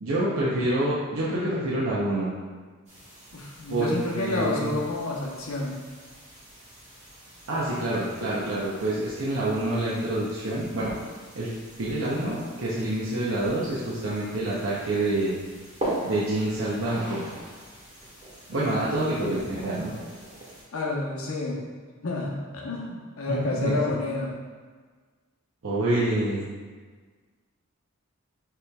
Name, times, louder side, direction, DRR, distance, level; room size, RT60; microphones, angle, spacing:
voice 1, 0.0-2.3 3.7-4.7 7.5-10.9 11.3-15.3 16.0-17.2 18.5-19.9 23.3-23.7 25.6-26.5, right 1 dB, 70° right, -7 dB, 0.7 m, -27 dB
sound 1, 2.9-20.6, right 1 dB, 35° right, 1.5 m, -42 dB
voice 2, 3.3-5.8 20.7-21.6 22.0-24.3, left 2 dB, 80° left, -3 dB, 0.9 m, -29 dB
6.7 x 3.1 x 2.3 m, 1.5 s
head